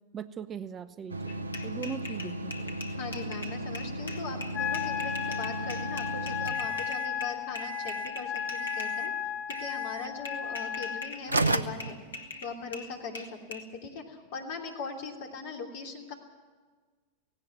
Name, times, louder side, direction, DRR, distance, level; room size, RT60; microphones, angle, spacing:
voice 1, 0.1-2.9, right 7 dB, 25° right, 15 dB, 0.6 m, -40 dB
sound 1, 1.1-7.2 7.5-8.2 8.5-9.2 9.5-10.1 10.9-11.0 11.3-12.6, right 2 dB, 80° right, 0.7 m, -35 dB
sound 2, 1.3-9.0 9.5-9.7 10.2-13.6, left 2 dB, 70° left, 1.7 m, -42 dB
voice 2, 2.9-9.1 9.6-12.0 12.4-16.1, left 4 dB, 50° left, 3 dB, 3.0 m, -40 dB
Wind instrument woodwind instrument, 4.5-11.1, left 9 dB, 30° left, 1.0 m, -34 dB
17.5 x 17.0 x 9.3 m, 1.4 s
figure-of-eight pair, 90°, 0 cm